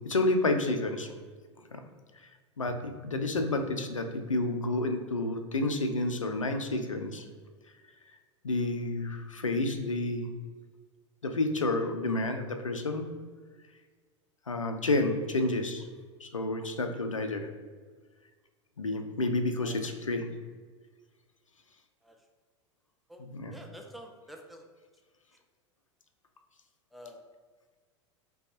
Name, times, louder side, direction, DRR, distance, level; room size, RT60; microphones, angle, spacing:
voice 1, 0.1-1.1 1.7-1.8 2.6-7.2 8.4-10.3 11.2-13.0 14.5-15.9 16.2-17.5 18.8-20.3 23.2-23.5, left 2 dB, 85° left, 6 dB, 0.4 m, -30 dB
voice 2, 23.5-24.6 26.9-27.2, equal, ahead, 2 dB, 0.4 m, -48 dB
5.0 x 2.3 x 2.8 m, 1.5 s
figure-of-eight pair, 85°, 16 cm